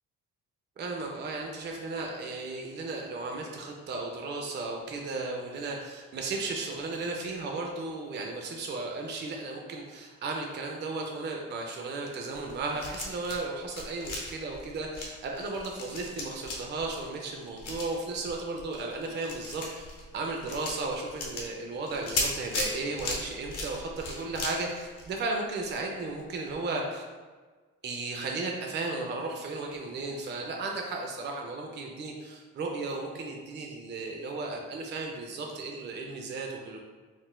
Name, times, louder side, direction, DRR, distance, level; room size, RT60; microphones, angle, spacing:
voice 1, 0.8-19.8 20.1-27.0 27.8-36.8, right 3 dB, 35° right, 0 dB, 0.4 m, -35 dB
sound 1, 12.3-13.4 13.7-25.8 26.1-26.2 26.5-26.6, left 2 dB, 80° left, 0.8 m, -37 dB
3.9 x 2.5 x 2.2 m, 1.4 s
cardioid pair, 90°, 30 cm